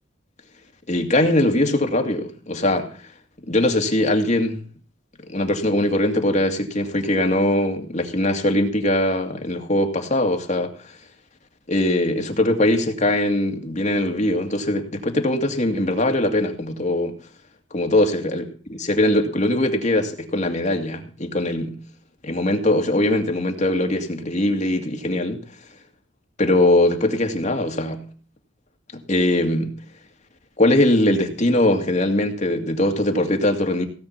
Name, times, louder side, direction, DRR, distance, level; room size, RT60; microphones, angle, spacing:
voice 1, 0.9-2.9 3.5-4.6 5.3-10.7 11.7-17.1 17.7-18.4 18.8-21.8 22.2-25.4 26.4-28.0 28.9-29.7 30.6-33.9, left 1 dB, 40° left, 2.2 m, -21 dB
17.0 x 8.9 x 5.8 m
head